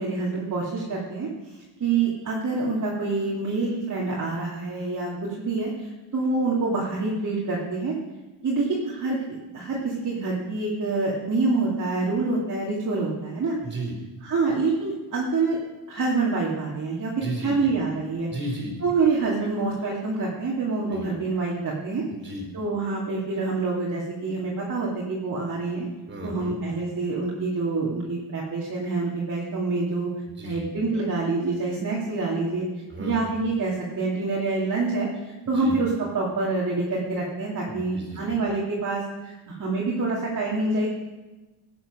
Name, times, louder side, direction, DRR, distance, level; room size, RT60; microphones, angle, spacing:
voice 1, 0.0-7.9 8.4-13.5 14.2-15.6 15.9-18.3 18.8-22.0 22.5-25.9 26.2-30.1 30.4-32.7 33.0-40.9, right 3 dB, 35° right, -5 dB, 2.5 m, -26 dB
voice 2, 13.6-13.9 17.2-17.5 18.3-18.7 20.9-21.0 22.1-22.4 26.1-26.6 30.4-30.7 32.9-33.1 35.5-35.7 37.7-38.4, right 1 dB, 20° right, 2 dB, 4.0 m, -34 dB
16.5 x 9.0 x 6.1 m, 1.1 s
cardioid pair, 140°, 49 cm